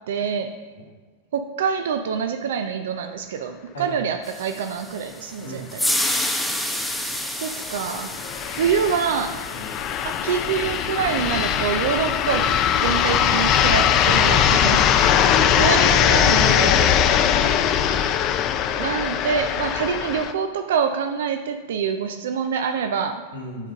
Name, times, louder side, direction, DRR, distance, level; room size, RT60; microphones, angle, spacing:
voice 1, 0.1-0.6 1.3-6.2 7.4-8.1 8.5-9.4 10.0-14.8 15.5-17.2 18.7-23.2, right 7 dB, 65° right, 6 dB, 0.5 m, -26 dB
sound 1, 4.2-12.5, left 1 dB, 5° left, 0.9 m, -30 dB
voice 2, 5.4-5.7 9.5-9.7 15.1-15.5 17.3-17.8 23.3-23.7, equal, 85° left, -3 dB, 1.9 m, -37 dB
sound 2, 6.2-6.3 6.6-6.7 7.5-20.3, left 9 dB, 40° left, 0.5 m, -20 dB
9.7 x 3.8 x 5.0 m, 1.4 s
figure-of-eight pair, 90°, 0 cm